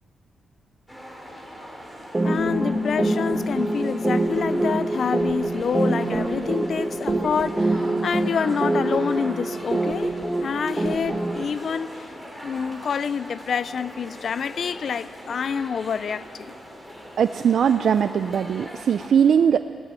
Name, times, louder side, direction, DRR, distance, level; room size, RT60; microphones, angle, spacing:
sound 1, 0.9-19.1, equal, 10° left, 3.3 m, -41 dB
sound 2, 2.1-11.4, right 2 dB, 25° right, 1.2 m, -25 dB
voice 1, 2.2-12.1 12.4-16.5, left 6 dB, 60° left, 0.4 m, -27 dB
Bass guitar, 2.2-8.5, left 4 dB, 35° left, 2.7 m, -34 dB
voice 2, 17.2-19.6, right 7 dB, 70° right, 0.4 m, -20 dB
18.0 x 8.8 x 9.0 m
cardioid pair, 80°, 0 cm